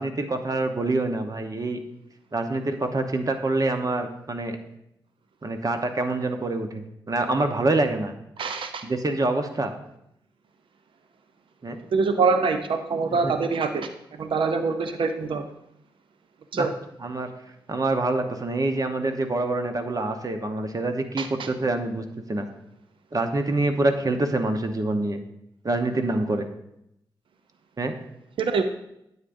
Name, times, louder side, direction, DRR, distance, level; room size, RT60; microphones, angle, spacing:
voice 1, 0.0-1.8 2.3-4.6 5.4-8.1 8.8-9.7 11.6-11.8 13.1-13.3 16.5-16.7 17.0-17.3 17.7-22.5 23.1-25.2 25.6-26.5 27.8-27.9, right 2 dB, 40° right, 6 dB, 1.0 m, -26 dB
voice 2, 8.4-8.8 11.9-15.4 16.5-16.7 21.2-21.3 28.4-28.6, right 4 dB, 70° right, 8 dB, 0.6 m, -24 dB
9.6 x 7.3 x 2.6 m, 0.81 s
supercardioid pair, 45°, 9 cm